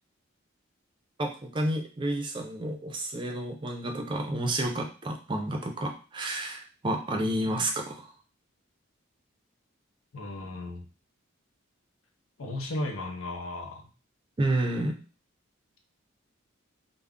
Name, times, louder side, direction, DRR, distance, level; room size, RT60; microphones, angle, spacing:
voice 1, 1.2-8.1 14.4-15.0, right 1 dB, 25° right, 3 dB, 0.4 m, -30 dB
voice 2, 10.1-10.9 12.4-13.9, left 2 dB, 85° left, 4 dB, 0.6 m, -35 dB
2.3 x 2.0 x 3.5 m, 0.36 s
head